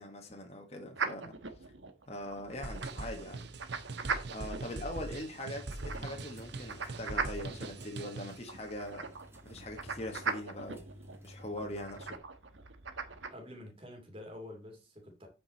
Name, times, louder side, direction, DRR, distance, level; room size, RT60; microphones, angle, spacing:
voice 1, 0.0-1.7 2.1-3.4 4.3-9.1 9.4-10.8 11.2-12.2, left 1 dB, 35° left, 1.5 m, -42 dB
sound 1, 0.9-13.3, right 5 dB, 70° right, 1.2 m, -41 dB
sound 2, 2.6-8.5, right 2 dB, 55° right, 0.8 m, -42 dB
sound 3, 5.5-12.2, equal, 15° right, 1.3 m, -53 dB
voice 2, 13.3-15.3, left 1 dB, 30° right, 2.6 m, -48 dB
8.9 x 5.4 x 4.2 m
head